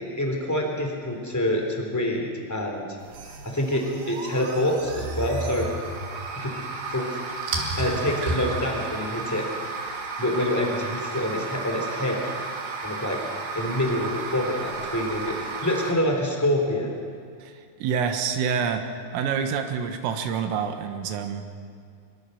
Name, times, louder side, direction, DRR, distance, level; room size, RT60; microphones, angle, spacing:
voice 1, 0.0-2.9 3.4-5.7 6.3-6.5 6.9-7.1 7.8-9.5 10.2-12.2 12.8-13.2 13.5-16.9, left 1 dB, 5° left, 1 dB, 2.8 m, -26 dB
sound 1, 3.0-15.9, right 3 dB, 60° right, 4.2 m, -33 dB
voice 2, 17.4-21.5, right 7 dB, 85° right, 6 dB, 4.0 m, -27 dB
24.5 x 23.5 x 6.8 m, 2.3 s
omnidirectional pair, 5.8 m